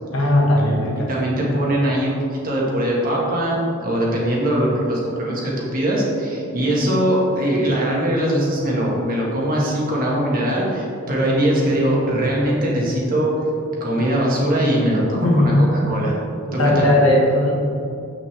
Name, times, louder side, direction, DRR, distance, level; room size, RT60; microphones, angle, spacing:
voice 1, 0.1-1.1 15.1-15.5 16.6-17.5, left 1 dB, 85° left, -3 dB, 1.5 m, -17 dB
voice 2, 1.1-13.4 13.8-16.1 16.5-16.9, right 1 dB, 45° right, -4 dB, 1.6 m, -21 dB
7.9 x 6.1 x 3.3 m, 2.6 s
head